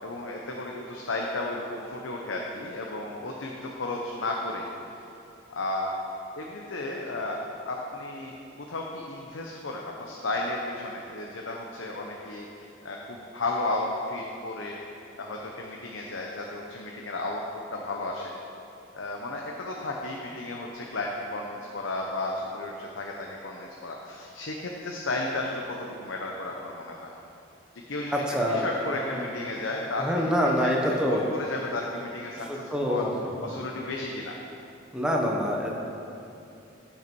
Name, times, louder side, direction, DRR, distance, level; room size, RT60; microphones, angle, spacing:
voice 1, 0.0-4.7 4.9-5.0 5.5-5.9 6.4-7.4 7.6-8.3 8.7-14.8 15.2-17.4 17.7-18.3 18.9-27.1 27.9-28.1 28.5-30.7 31.1-33.0 33.4-34.4, left 2 dB, 85° left, 0 dB, 0.8 m, -33 dB
voice 2, 28.1-28.7 29.0-29.2 30.0-31.2 32.5-33.1 33.4-33.5 34.9-35.8, equal, 5° right, -1 dB, 1.1 m, -26 dB
15.0 x 5.7 x 4.6 m, 2.8 s
head